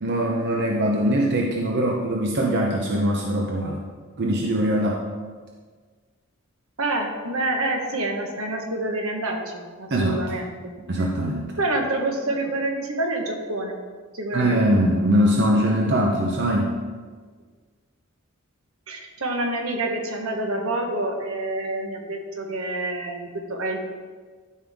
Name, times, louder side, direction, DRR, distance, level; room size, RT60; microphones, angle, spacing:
voice 1, 0.0-3.8 4.2-5.1 9.9-10.2 10.9-11.5 14.3-16.8, equal, 55° right, -1 dB, 0.8 m, -22 dB
voice 2, 6.8-10.7 11.6-13.8 14.1-14.6 18.9-23.8, right 2 dB, 70° right, 2 dB, 1.3 m, -27 dB
12.5 x 5.5 x 3.6 m, 1.5 s
head